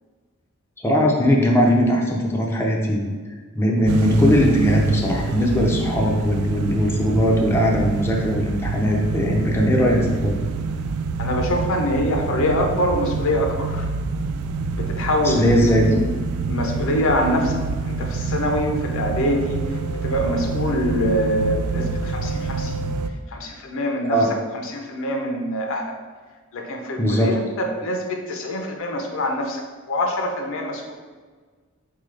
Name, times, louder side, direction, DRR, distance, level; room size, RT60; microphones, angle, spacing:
voice 1, 0.8-3.2 3.5-10.5 15.2-16.0 24.1-24.3 27.0-27.4, equal, 10° left, -2 dB, 0.5 m, -19 dB
sound 1, 3.9-23.1, right 4 dB, 80° right, 0.3 m, -27 dB
voice 2, 11.2-13.9 14.7-16.0 16.4-17.6 17.8-22.9 23.3-24.2 24.6-25.9 26.5-29.6 29.9-30.9, left 1 dB, 65° left, 3 dB, 0.6 m, -24 dB
4.0 x 3.7 x 3.3 m, 1.5 s
head